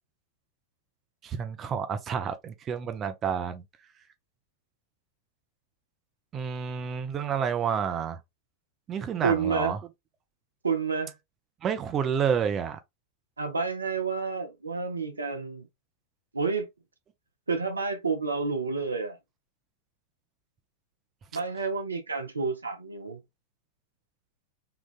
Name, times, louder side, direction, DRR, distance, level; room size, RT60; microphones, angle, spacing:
voice 1, 1.2-3.6 6.3-8.2 8.9-9.8 11.6-12.8, right 7 dB, 25° right, 0.5 m, -29 dB
voice 2, 9.2-9.7 10.6-11.1 13.4-15.7 16.3-16.7 17.5-19.2 21.3-23.2, right 4 dB, 80° right, 0.6 m, -29 dB
3.8 x 2.3 x 2.4 m
figure-of-eight pair, 90°, 0 cm